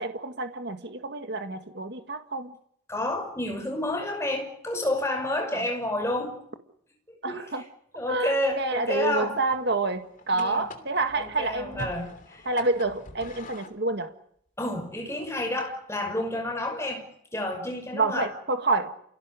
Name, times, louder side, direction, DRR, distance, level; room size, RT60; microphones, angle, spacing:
voice 1, 0.0-2.5 5.5-5.6 7.2-7.6 8.1-11.9 12.4-14.1 17.9-18.9, right 3 dB, 55° right, 8 dB, 1.8 m, -28 dB
voice 2, 2.9-6.4 7.3-7.4 8.0-9.4 10.3-10.7 11.2-12.5 14.6-17.1 17.3-18.3, left 1 dB, 15° left, 4 dB, 5.8 m, -30 dB
sound 1, 8.5-13.8, left 2 dB, 40° left, 3.1 m, -45 dB
28.0 x 17.5 x 9.9 m, 0.70 s
head